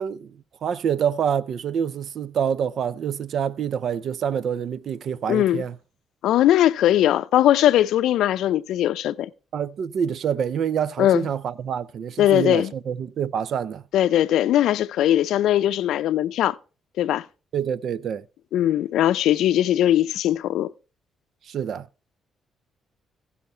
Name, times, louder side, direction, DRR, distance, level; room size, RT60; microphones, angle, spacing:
voice 1, 0.0-5.7 9.5-13.8 17.5-18.2 21.5-21.9, right 8 dB, 65° right, 0.5 m, -26 dB
voice 2, 5.3-5.6 6.2-9.3 11.0-11.3 12.2-12.7 13.9-16.6 17.0-17.2 18.5-20.7, left 12 dB, 80° left, 0.5 m, -20 dB
16.5 x 5.6 x 4.3 m
cardioid pair, 90°, 0 cm